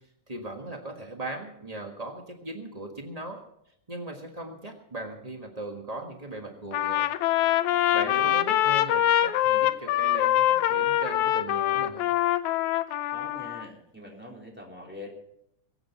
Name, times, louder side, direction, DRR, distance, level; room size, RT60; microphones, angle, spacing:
voice 1, 0.3-3.4 3.9-7.1 7.9-12.1, right 2 dB, 55° right, 2 dB, 0.4 m, -38 dB
Trumpet, 6.7-13.6, left 12 dB, 75° left, 2.0 m, -24 dB
voice 2, 8.0-8.3 13.1-15.1, equal, 5° right, -2 dB, 3.6 m, -43 dB
22.0 x 8.8 x 5.9 m, 0.76 s
omnidirectional pair, 3.5 m